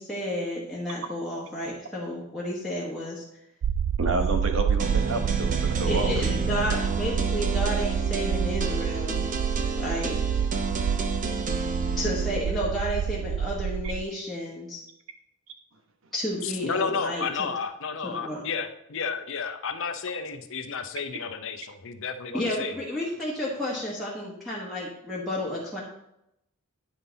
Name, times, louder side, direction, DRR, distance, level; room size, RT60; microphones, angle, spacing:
voice 1, 0.0-3.2 4.1-4.4 5.9-9.2 9.8-10.1 12.0-14.8 16.1-17.5 18.0-18.5 22.3-25.8, left 1 dB, ahead, -7 dB, 1.3 m, -31 dB
sound 1, 3.6-14.0, right 8 dB, 85° right, 0.3 m, -28 dB
voice 2, 4.0-6.1, right 2 dB, 60° right, 6 dB, 0.9 m, -30 dB
sound 2, 4.8-12.4, right 2 dB, 35° right, 0.7 m, -32 dB
voice 3, 16.4-22.7, left 5 dB, 60° left, 8 dB, 0.7 m, -32 dB
9.5 x 5.6 x 4.0 m, 0.82 s
head